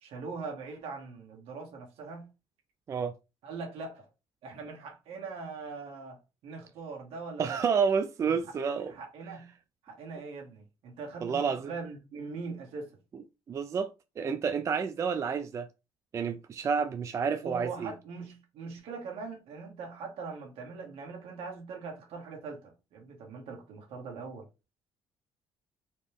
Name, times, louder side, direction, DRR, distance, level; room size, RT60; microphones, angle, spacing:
voice 1, 0.0-2.3 3.4-4.1 4.4-7.6 8.7-9.5 9.8-13.0 17.4-24.5, right 4 dB, 75° right, 1.8 m, -41 dB
voice 2, 7.4-8.9 11.2-11.7 13.5-13.9 14.2-15.7 16.1-17.9, right 6 dB, 30° right, 0.3 m, -29 dB
4.2 x 3.1 x 3.4 m
cardioid pair, 145°, 10 cm